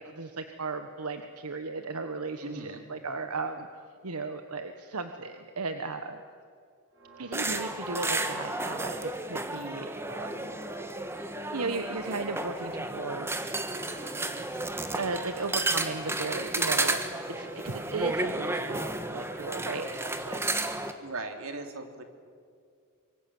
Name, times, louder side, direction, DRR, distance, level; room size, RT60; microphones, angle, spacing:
voice 1, 0.0-3.7 4.0-6.2 7.2-10.4 11.2-11.3 11.5-13.6 14.9-17.0 17.4-20.4, right 3 dB, 85° right, 7 dB, 1.3 m, -36 dB
voice 2, 2.4-2.8 21.0-22.0, right 2 dB, 70° right, 5 dB, 2.9 m, -38 dB
Church bell, 6.9-9.3 9.6-9.7 10.1-20.1, right 3 dB, 50° right, 8.0 m, -54 dB
sound 1, 7.3-20.9, right 2 dB, 10° right, 1.4 m, -32 dB
25.5 x 24.0 x 7.8 m, 2.2 s
head